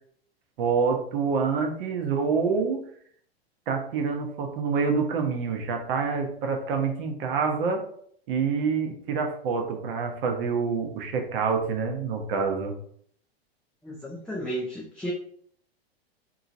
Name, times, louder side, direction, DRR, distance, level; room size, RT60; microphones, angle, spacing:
voice 1, 0.6-2.8 3.7-7.8 8.3-12.7, right 5 dB, 60° right, 3 dB, 0.8 m, -27 dB
voice 2, 13.8-15.1, equal, ahead, -5 dB, 0.4 m, -33 dB
2.9 x 2.7 x 2.5 m, 0.63 s
hypercardioid pair, 105°, 32 cm